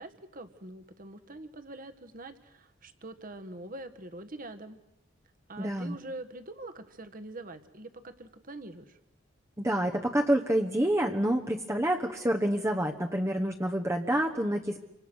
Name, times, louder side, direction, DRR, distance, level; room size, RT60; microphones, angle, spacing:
voice 1, 0.0-4.8 5.5-9.0, right 2 dB, 45° right, 9 dB, 1.7 m, -44 dB
voice 2, 5.6-6.0 9.6-14.8, right 1 dB, 15° right, 1 dB, 1.2 m, -28 dB
28.5 x 25.5 x 6.4 m, 0.90 s
head